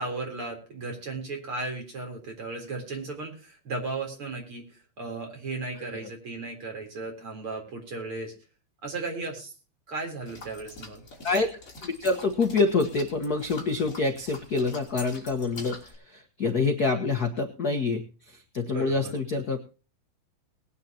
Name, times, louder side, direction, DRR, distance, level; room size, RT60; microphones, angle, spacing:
voice 1, 0.0-8.3 8.8-9.5 9.9-11.0 18.7-19.1, right 3 dB, 40° right, 2 dB, 4.4 m, -35 dB
sound 1, 10.2-15.9, left 3 dB, 25° left, 4.0 m, -45 dB
voice 2, 11.8-19.6, left 3 dB, 65° left, 5 dB, 0.9 m, -27 dB
20.5 x 9.7 x 2.9 m, 0.36 s
omnidirectional pair, 3.9 m